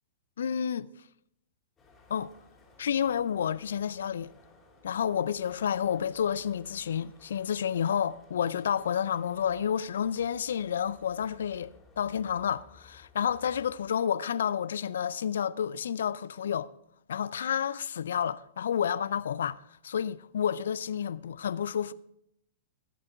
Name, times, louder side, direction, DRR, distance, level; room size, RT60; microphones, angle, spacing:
voice 1, 0.4-0.9 2.1-2.3 2.8-4.3 4.8-11.7 12.0-16.7 17.1-19.6 19.8-21.9, left 8 dB, 70° left, 0.4 m, -30 dB
sound 1, 1.8-13.9, left 4 dB, 20° left, 2.6 m, -58 dB
13.0 x 7.5 x 4.6 m
hypercardioid pair, 105°, 0 cm